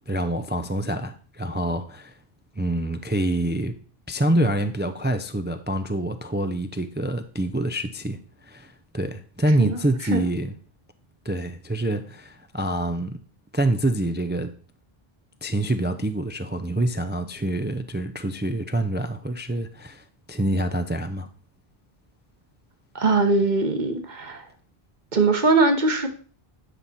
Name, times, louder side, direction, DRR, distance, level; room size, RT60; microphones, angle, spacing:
voice 1, 0.1-2.1 2.6-3.7 4.1-10.5 11.2-13.2 13.5-14.5 15.4-21.3, right 1 dB, 15° right, 0.4 m, -26 dB
voice 2, 22.9-24.4 25.1-26.1, right 3 dB, 50° right, 1.4 m, -21 dB
11.0 x 6.0 x 4.2 m
omnidirectional pair, 1.0 m